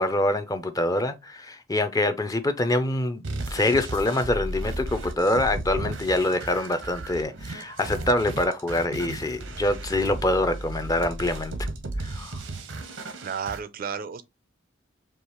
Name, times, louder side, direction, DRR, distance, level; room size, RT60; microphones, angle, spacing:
voice 1, 0.0-11.5 12.0-12.4, left 1 dB, 20° left, 0.5 m, -25 dB
sound 1, 3.2-13.6, right 2 dB, 90° right, 0.8 m, -34 dB
voice 2, 13.2-14.2, right 6 dB, 50° right, 0.4 m, -32 dB
4.6 x 2.8 x 3.0 m
head